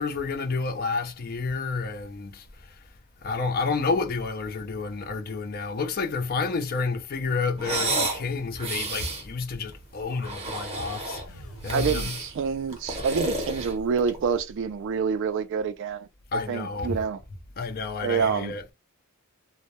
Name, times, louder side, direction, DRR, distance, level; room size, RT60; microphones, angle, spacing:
voice 1, 0.0-2.7 3.2-12.2 16.3-17.0 17.6-18.7, left 4 dB, 40° left, 0.4 m, -30 dB
sound 1, 7.6-8.2 8.6-9.2 10.1-11.3 11.6-12.3 12.7-14.2, right 2 dB, 30° right, 0.7 m, -30 dB
sound 2, 11.3-14.5, equal, 65° left, 0.8 m, -41 dB
voice 2, 11.7-17.2 18.0-18.5, right 6 dB, 55° right, 0.3 m, -27 dB
2.1 x 2.0 x 2.8 m
head